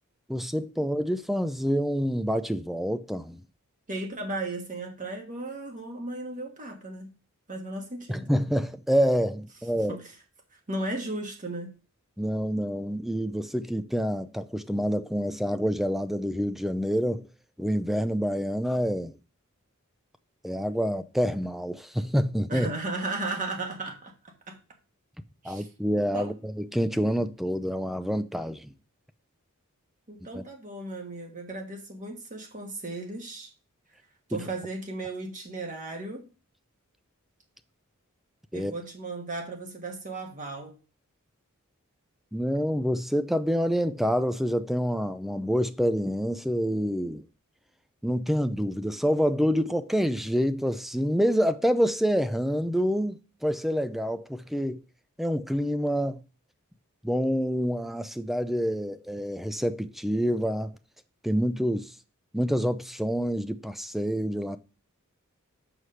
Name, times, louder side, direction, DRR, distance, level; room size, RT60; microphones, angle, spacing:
voice 1, 0.3-3.4 8.1-10.0 12.2-17.3 17.6-19.2 20.4-22.7 25.4-28.7 30.3-30.4 34.3-34.4 38.5-38.7 42.3-47.2 48.0-54.8 55.2-56.2 57.0-60.7 61.2-61.9 62.3-64.6, equal, ahead, 0.4 m, -27 dB
voice 2, 3.9-7.1 7.5-8.3 9.9-10.1 10.7-11.7 22.5-24.1 24.5-24.6 25.4-25.7 26.1-26.3 30.1-33.5 34.3-36.3 38.5-40.8, right 2 dB, 35° right, 1.5 m, -35 dB
6.4 x 4.9 x 5.5 m
head